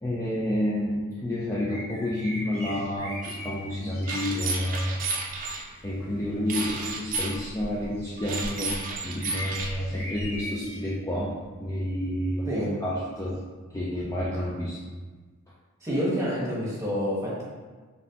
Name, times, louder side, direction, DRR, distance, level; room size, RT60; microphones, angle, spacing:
voice 1, 0.0-5.0 5.8-12.5 12.8-13.4 13.7-14.8, left 1 dB, 15° left, -6 dB, 0.4 m, -30 dB
sound 1, 1.7-4.4 5.2-5.6 6.2-10.9 11.4-11.6 13.4-13.5, equal, 30° left, 0.9 m, -40 dB
sound 2, 3.2-3.4 4.1-5.6 6.5-7.4 8.2-9.7, right 3 dB, 40° right, 0.6 m, -32 dB
voice 2, 15.8-17.4, equal, 15° right, -6 dB, 1.1 m, -28 dB
4.0 x 3.5 x 2.7 m, 1.4 s
head